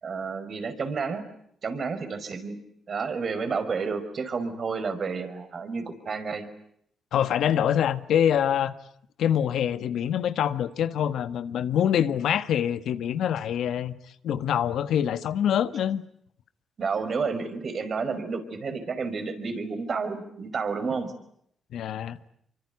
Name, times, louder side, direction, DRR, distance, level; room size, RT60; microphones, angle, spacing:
voice 1, 0.0-1.2 1.6-2.6 2.9-6.4 16.8-21.1, right 5 dB, 55° right, 5.4 m, -30 dB
voice 2, 7.1-8.7 9.2-13.9 14.2-16.0 21.7-22.2, left 9 dB, 80° left, 1.4 m, -25 dB
25.5 x 24.5 x 9.6 m
cardioid pair, 65°, 0 cm